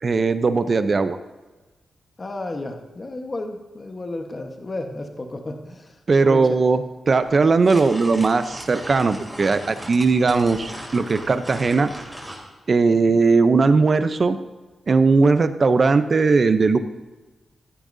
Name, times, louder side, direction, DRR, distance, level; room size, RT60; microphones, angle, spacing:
voice 1, 0.0-1.2 6.1-11.9 12.7-14.4 14.9-16.8, right 4 dB, 35° right, 10 dB, 0.6 m, -18 dB
voice 2, 2.2-6.6 12.9-13.2, left 2 dB, 25° left, 3 dB, 1.2 m, -33 dB
sound 1, 7.2-12.4, equal, 5° right, 2.7 m, -38 dB
15.0 x 12.5 x 2.7 m, 1.2 s
wide cardioid pair, 165°, 0 cm